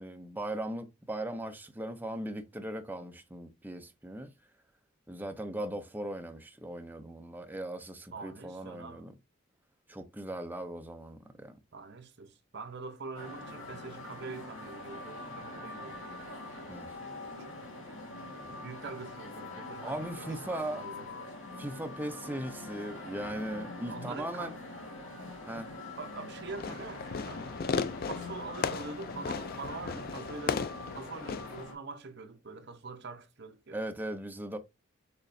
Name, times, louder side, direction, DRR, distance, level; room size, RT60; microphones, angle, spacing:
voice 1, 0.0-4.3 5.1-9.2 9.9-11.6 16.7-16.9 19.8-20.8 21.6-24.5 25.5-25.7 33.7-34.6, right 1 dB, 10° right, 0.5 m, -38 dB
voice 2, 8.1-9.1 11.7-16.0 17.9-18.0 18.5-21.1 23.6-24.6 26.0-27.4 28.0-33.8, right 4 dB, 50° right, 0.8 m, -44 dB
sound 1, 13.1-31.7, left 2 dB, 60° left, 1.6 m, -44 dB
Fireworks, 26.5-31.6, left 5 dB, 45° left, 0.3 m, -36 dB
6.5 x 3.0 x 2.6 m
head